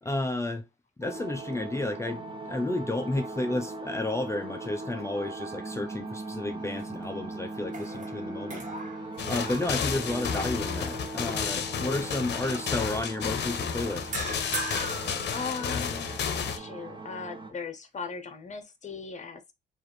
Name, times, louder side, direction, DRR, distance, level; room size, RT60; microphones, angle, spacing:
voice 1, 0.0-0.7 1.0-8.6 9.2-14.1, left 2 dB, 15° left, 0.5 m, -32 dB
sound 1, 1.0-17.5, right 2 dB, 25° right, 1.0 m, -40 dB
sound 2, 6.6-7.3 7.6-10.9 11.4-11.6 14.1-16.1, right 3 dB, 40° right, 1.4 m, -40 dB
sound 3, 9.2-16.6, left 7 dB, 60° left, 0.8 m, -32 dB
voice 2, 15.3-19.5, left 5 dB, 35° left, 1.0 m, -39 dB
4.7 x 2.6 x 3.0 m
cardioid pair, 90°, 20 cm